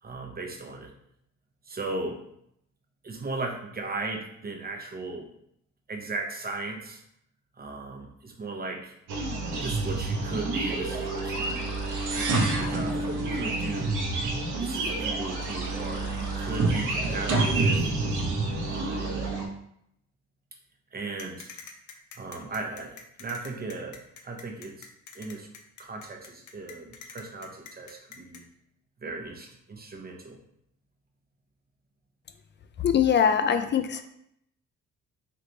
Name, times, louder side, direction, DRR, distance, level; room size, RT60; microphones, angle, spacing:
voice 1, 0.0-0.9 1.7-2.2 3.0-5.3 5.9-7.0 7.6-8.9 9.6-11.7 12.1-14.0 14.6-17.8 18.7-19.3 20.9-21.5 22.2-24.9 25.1-25.5 25.8-28.5 29.0-30.4, right 3 dB, 30° right, 1 dB, 0.9 m, -37 dB
sound 1, 9.1-19.5, right 3 dB, 80° right, 0.9 m, -28 dB
sound 2, 21.2-28.4, left 6 dB, 75° left, 0.6 m, -45 dB
voice 2, 32.8-34.0, left 8 dB, 40° left, 9 dB, 0.4 m, -22 dB
3.3 x 3.2 x 3.9 m, 0.74 s
cardioid pair, 90°, 30 cm